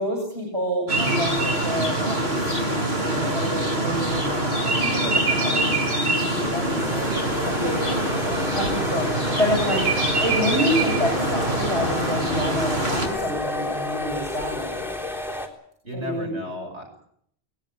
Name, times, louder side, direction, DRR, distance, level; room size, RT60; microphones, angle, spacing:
voice 1, 0.0-8.2 8.5-9.9 10.2-14.9 15.9-16.4, equal, 25° right, 0 dB, 6.4 m, -28 dB
sound 1, 0.9-13.1, right 1 dB, 70° right, 6.6 m, -24 dB
sound 2, 6.3-15.5, left 2 dB, ahead, 3.7 m, -31 dB
voice 2, 8.1-8.6 15.8-17.0, equal, 85° right, 3 dB, 6.6 m, -34 dB
20.5 x 19.0 x 8.6 m, 0.67 s
omnidirectional pair, 1.1 m